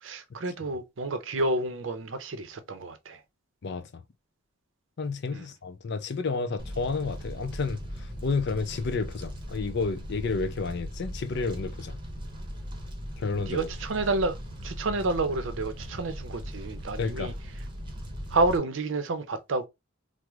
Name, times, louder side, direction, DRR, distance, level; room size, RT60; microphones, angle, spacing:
voice 1, 0.0-3.2 5.3-5.5 13.4-14.4 14.6-17.3 18.3-19.7, right 2 dB, 65° right, 0.6 m, -29 dB
voice 2, 3.6-4.0 5.0-12.0 13.2-13.7 17.0-17.3, left 4 dB, 55° left, 0.5 m, -31 dB
Fire, 6.6-18.6, equal, 25° right, 0.8 m, -39 dB
3.1 x 2.0 x 3.4 m
head